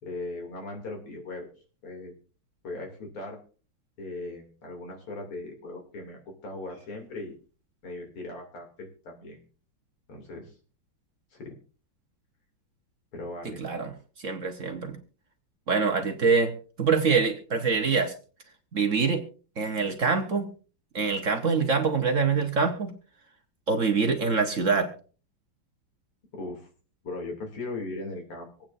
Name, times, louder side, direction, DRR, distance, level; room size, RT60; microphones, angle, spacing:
voice 1, 0.0-1.5 1.8-2.1 2.6-3.4 4.0-7.3 7.8-9.4 10.1-10.5 11.3-11.6 13.1-13.6 26.3-26.7 27.0-28.5, left 2 dB, 90° left, 2 dB, 3.8 m, -38 dB
voice 2, 13.6-13.9 14.2-15.0 15.7-18.1 18.7-19.2 19.6-20.5 20.9-23.0 23.7-24.9, right 5 dB, 45° right, 5 dB, 1.3 m, -25 dB
25.5 x 8.8 x 2.6 m, 0.38 s
omnidirectional pair, 2.3 m